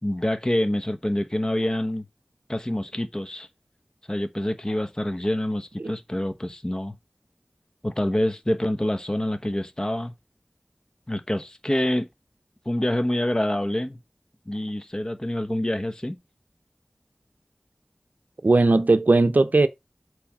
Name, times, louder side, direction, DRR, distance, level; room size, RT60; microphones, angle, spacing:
voice 1, 0.0-2.0 2.5-3.5 4.1-7.0 7.8-10.1 11.1-12.1 12.6-14.0 14.5-16.2, left 1 dB, 25° left, 1.1 m, -26 dB
voice 2, 18.4-19.7, right 3 dB, 70° right, 0.7 m, -18 dB
8.2 x 3.3 x 6.0 m
wide cardioid pair, 50°, 3 cm